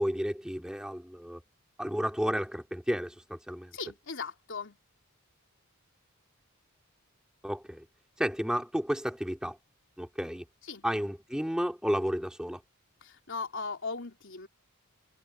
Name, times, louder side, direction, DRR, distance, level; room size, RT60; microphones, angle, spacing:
voice 1, 0.0-1.4 1.8-3.7 7.4-7.8 8.2-9.6 10.0-10.5 10.8-12.6, equal, 5° right, 2.5 m, -32 dB
voice 2, 3.7-4.8 10.6-10.9 13.0-14.5, left 4 dB, 55° left, 3.8 m, -38 dB
head